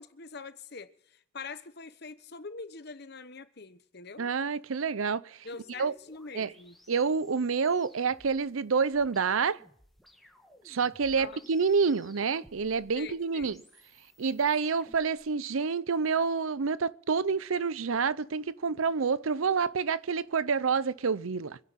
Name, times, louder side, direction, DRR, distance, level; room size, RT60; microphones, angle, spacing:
voice 1, 0.0-4.3 5.4-6.8 11.2-11.5 12.9-13.6, left 4 dB, 50° left, 1.0 m, -44 dB
voice 2, 4.2-5.4 5.8-5.9 6.3-6.5 6.9-9.6 10.7-13.6 14.2-21.6, right 5 dB, 80° right, 0.6 m, -28 dB
sound 1, 5.5-15.2, equal, ahead, 1.6 m, -59 dB
25.5 x 10.5 x 4.2 m
head